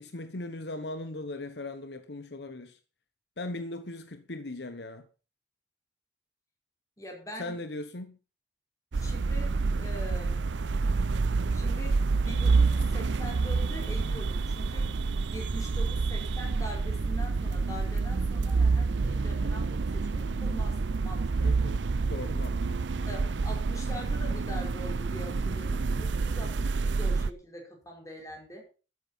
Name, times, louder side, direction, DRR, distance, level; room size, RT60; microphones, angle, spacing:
voice 1, 0.0-2.8 3.4-5.0 7.4-8.2 21.4-21.8 22.1-22.9, left 2 dB, 70° left, 1.1 m, -39 dB
voice 2, 7.0-7.6 9.0-10.5 11.5-15.0 15.3-21.5 23.1-28.6, equal, 20° left, 5.2 m, -43 dB
sound 1, 8.9-27.3, right 4 dB, 85° right, 0.6 m, -28 dB
13.0 x 9.5 x 5.6 m
head